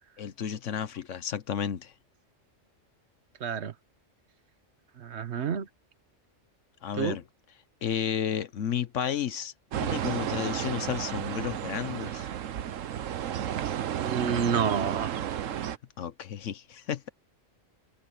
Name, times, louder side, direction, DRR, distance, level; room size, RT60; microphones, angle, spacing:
voice 1, 0.2-1.9 6.8-7.2 7.8-12.3 16.0-17.1, left 8 dB, 75° left, 1.2 m, -32 dB
voice 2, 3.4-3.7 5.0-5.7 7.0-7.2 14.0-15.1, right 7 dB, 60° right, 1.2 m, -29 dB
sound 1, 9.7-15.8, right 10 dB, 85° right, 1.2 m, -32 dB
omnidirectional pair, 1.3 m